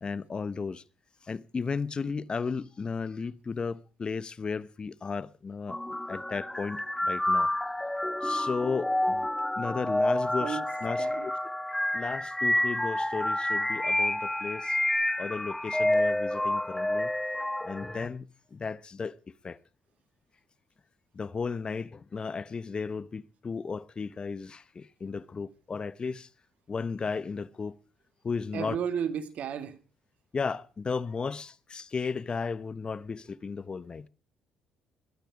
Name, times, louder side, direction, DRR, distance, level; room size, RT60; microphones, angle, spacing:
voice 1, 0.0-0.8 1.2-5.8 6.1-7.5 8.2-9.3 9.6-11.3 11.9-14.8 15.2-17.1 17.6-19.2 19.4-19.6 21.1-26.3 26.7-27.8 28.2-28.8 30.3-34.1, left 5 dB, 35° left, 0.8 m, -34 dB
sound 1, 5.7-18.1, left 1 dB, 10° left, 1.1 m, -29 dB
voice 2, 28.5-29.8, right 8 dB, 60° right, 1.8 m, -33 dB
20.5 x 12.5 x 4.9 m
supercardioid pair, 60°, 3 cm